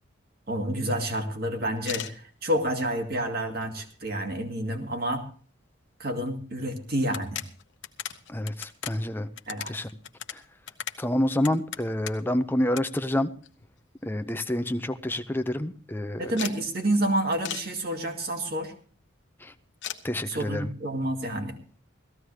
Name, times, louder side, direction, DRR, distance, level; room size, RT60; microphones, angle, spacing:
voice 1, 0.5-5.2 6.0-7.4 9.5-9.7 16.2-18.7 20.3-21.6, right 1 dB, 50° right, 2.1 m, -29 dB
sound 1, 1.8-2.2 2.9-3.0 3.4-4.1 4.4-4.5 4.8-4.9 6.3-6.4 6.6-6.7 7.0-12.3 12.7-12.9 13.1-13.9 14.3-14.4 14.6-14.7 15.0-15.3 16.4-16.6 17.4-17.7 19.8-20.0, left 10 dB, 60° left, 0.9 m, -38 dB
voice 2, 8.3-9.3 9.7-9.9 10.3-10.4 11.0-13.3 14.0-16.3 19.4-19.5 20.0-20.7, left 1 dB, 10° left, 0.6 m, -28 dB
17.5 x 14.5 x 3.3 m
head